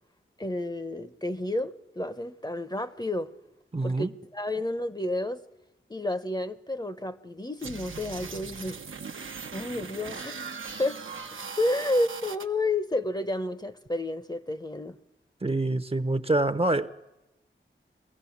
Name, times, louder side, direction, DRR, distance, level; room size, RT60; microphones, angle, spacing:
voice 1, 0.4-3.3 3.8-5.4 5.9-8.8 9.5-11.0 11.6-15.0, left 1 dB, 20° left, 0.8 m, -31 dB
voice 2, 3.7-4.1 15.4-16.9, right 2 dB, 30° right, 0.8 m, -26 dB
sound 1, 7.6-12.4, right 5 dB, 70° right, 1.0 m, -39 dB
23.0 x 15.5 x 7.2 m
cardioid pair, 45°, 21 cm